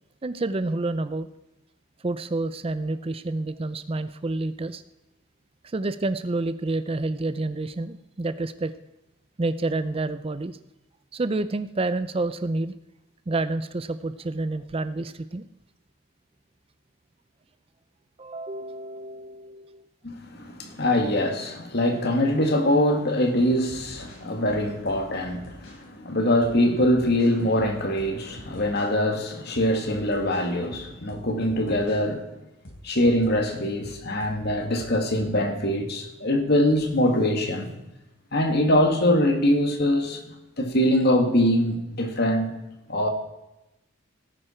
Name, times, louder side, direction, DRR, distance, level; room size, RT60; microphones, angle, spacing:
voice 1, 0.2-1.3 2.0-4.8 5.6-8.7 9.4-10.6 11.1-12.7 13.3-15.5 18.2-19.9, right 2 dB, 30° right, 0.5 m, -29 dB
voice 2, 20.0-32.3 32.8-37.7 38.3-42.5 42.9-43.1, left 1 dB, 55° left, 2.0 m, -23 dB
sound 1, 23.7-25.8 26.4-28.9 29.3-32.0 32.6-35.4, equal, 80° left, 4.5 m, -46 dB
17.5 x 9.7 x 4.4 m
head